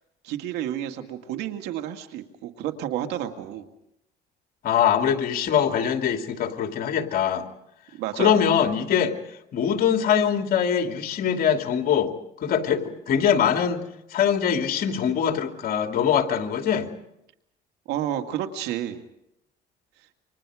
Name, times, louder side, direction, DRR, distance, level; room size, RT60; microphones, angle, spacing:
voice 1, 0.2-3.7 8.0-8.4 17.9-19.0, right 11 dB, 90° right, 6 dB, 2.2 m, -30 dB
voice 2, 4.6-7.5 8.2-16.9, left 8 dB, 60° left, 5 dB, 2.7 m, -23 dB
29.0 x 25.5 x 5.0 m, 0.83 s
cardioid pair, 110°, 17 cm